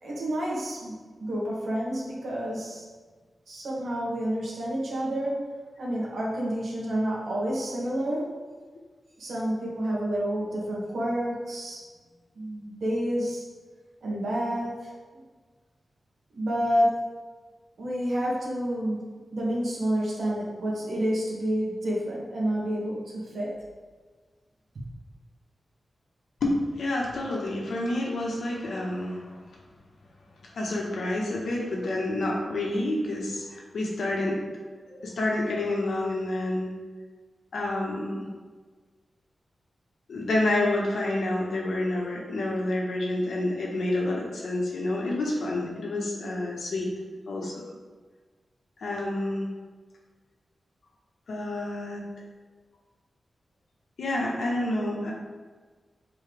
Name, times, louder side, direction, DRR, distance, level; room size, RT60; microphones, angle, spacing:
voice 1, 0.0-2.9 3.5-5.4 5.8-8.3 9.2-11.8 12.4-13.5 14.0-15.2 16.4-17.0 17.8-23.6, equal, 70° right, -5 dB, 1.9 m, -29 dB
voice 2, 26.4-29.4 30.5-34.4 34.9-36.7 37.5-38.2 40.1-46.9 47.3-47.7 48.8-49.5 51.3-52.1 54.0-55.1, left 1 dB, 85° left, -2 dB, 1.4 m, -28 dB
7.2 x 4.5 x 3.5 m, 1.4 s
wide cardioid pair, 165°, 0 cm